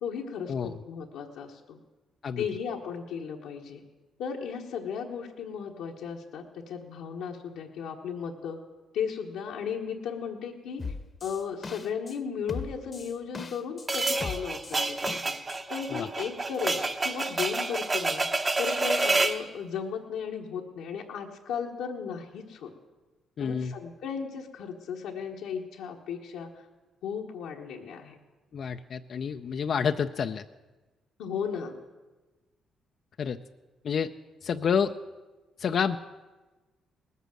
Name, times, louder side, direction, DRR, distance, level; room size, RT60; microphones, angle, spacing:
voice 1, 0.0-1.8 2.4-3.8 4.2-8.6 8.9-10.8 11.2-15.3 15.7-18.3 18.6-22.7 23.4-26.6 27.0-28.2 31.2-31.8, left 7 dB, 90° left, -1 dB, 1.4 m, -35 dB
sound 1, 10.8-12.2 12.5-13.9 14.2-15.6, left 4 dB, 35° left, 0.9 m, -38 dB
sound 2, 13.9-19.4, right 2 dB, 30° right, 1.0 m, -28 dB
voice 2, 23.4-23.7 28.5-30.4 33.2-33.4 33.8-34.1 34.4-34.9 35.6-36.0, left 7 dB, 55° left, 7 dB, 0.5 m, -28 dB
19.0 x 8.3 x 7.7 m, 1.2 s
cardioid pair, 90°, 0 cm